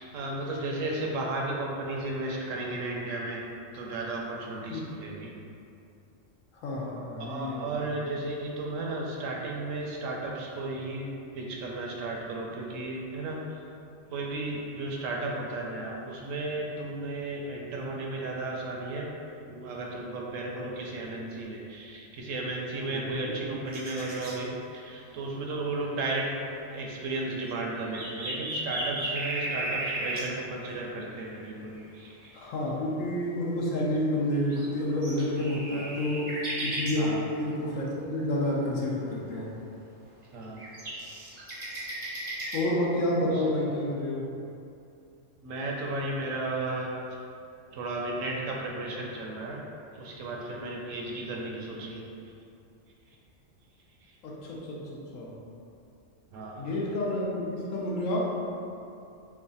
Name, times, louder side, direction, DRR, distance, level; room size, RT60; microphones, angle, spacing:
voice 1, 0.0-3.5 3.7-5.3 7.2-13.6 14.1-19.1 19.5-26.3 26.7-32.5 35.7-35.8 37.0-37.3 40.3-40.6 43.3-43.4 45.4-46.9 47.7-49.6 49.9-52.0 56.3-56.7, right 2 dB, 75° right, -2 dB, 0.9 m, -34 dB
voice 2, 6.6-7.9 22.9-23.6 32.3-39.5 42.5-44.2 54.2-55.3 56.6-58.4, left 1 dB, 75° left, -4 dB, 1.0 m, -29 dB
sound 1, 23.7-24.3 27.3-30.3 30.9-31.0 31.3-31.4 31.8-31.9 32.2-32.3 34.3-36.9 40.2-42.6, right 1 dB, 40° right, 0.7 m, -35 dB
3.1 x 2.4 x 3.8 m, 2.6 s
omnidirectional pair, 1.4 m